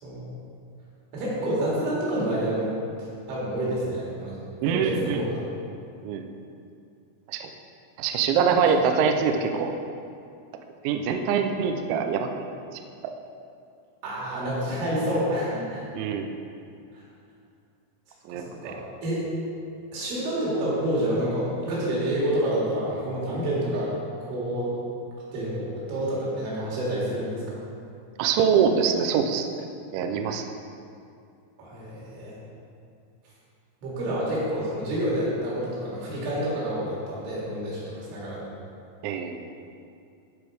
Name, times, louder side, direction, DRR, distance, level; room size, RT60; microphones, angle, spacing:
voice 1, 0.0-0.3 1.1-2.8 3.3-4.4 4.7-5.4 14.0-15.8 18.3-19.2 19.9-23.9 24.3-24.7 25.3-27.6 31.6-32.4 33.8-38.5, right 1 dB, 70° right, -6 dB, 4.7 m, -28 dB
voice 2, 4.6-5.2 6.0-6.3 7.3-7.5 8.0-9.8 10.8-12.5 13.0-13.2 15.9-16.3 18.3-18.7 28.2-29.7 29.9-30.5 39.0-39.5, right 6 dB, 85° right, 5 dB, 2.6 m, -24 dB
14.5 x 5.2 x 4.7 m, 2.5 s
omnidirectional pair, 5.9 m